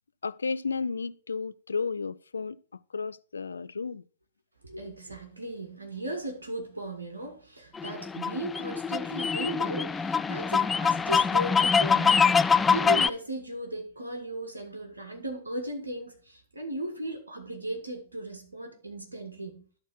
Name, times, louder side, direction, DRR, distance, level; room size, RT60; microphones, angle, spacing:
voice 1, 0.2-2.6 2.9-4.0, left 4 dB, 75° left, 0.5 m, -32 dB
voice 2, 4.6-19.6, right 1 dB, 80° right, 2.1 m, -37 dB
sound 1, 7.8-13.1, left 5 dB, 10° left, 0.3 m, -24 dB
12.0 x 4.1 x 5.9 m
figure-of-eight pair, 110°, 0 cm